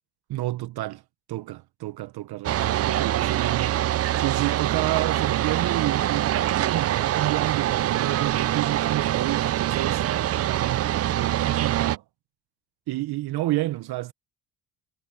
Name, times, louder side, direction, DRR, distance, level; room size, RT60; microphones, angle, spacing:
voice 1, 0.3-1.0 1.3-10.2 10.5-12.0 12.9-14.1, right 17 dB, 65° right, 1.0 m, -30 dB
sound 1, 2.4-12.0, right 12 dB, 40° right, 0.4 m, -24 dB
supercardioid pair, 80°, 41 cm